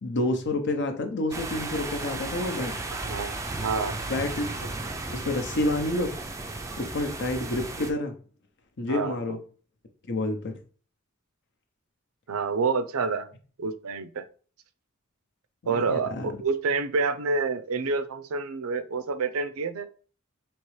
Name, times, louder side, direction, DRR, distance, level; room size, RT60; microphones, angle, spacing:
voice 1, 0.0-2.8 4.1-4.7 5.1-6.2 6.8-8.1 8.8-9.4 10.1-10.6 15.6-16.3, left 2 dB, 55° left, 0.7 m, -29 dB
sound 1, 1.3-7.9, right 2 dB, 15° right, 0.4 m, -34 dB
voice 2, 2.9-4.0 8.9-9.2 12.3-13.3 13.6-14.2 15.7-19.9, right 4 dB, 80° right, 0.5 m, -28 dB
4.4 x 3.0 x 3.2 m
head